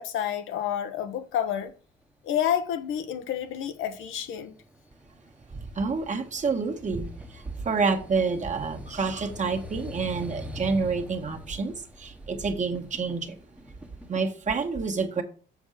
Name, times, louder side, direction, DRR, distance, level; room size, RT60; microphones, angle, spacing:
voice 1, 0.0-1.7 2.2-4.6, left 9 dB, 90° left, 1.1 m, -29 dB
sound 1, 2.9-14.2, left 1 dB, 5° right, 1.1 m, -44 dB
voice 2, 5.7-13.3 14.1-15.2, right 4 dB, 40° right, 1.5 m, -28 dB
7.2 x 4.4 x 6.5 m
cardioid pair, 90°, 20 cm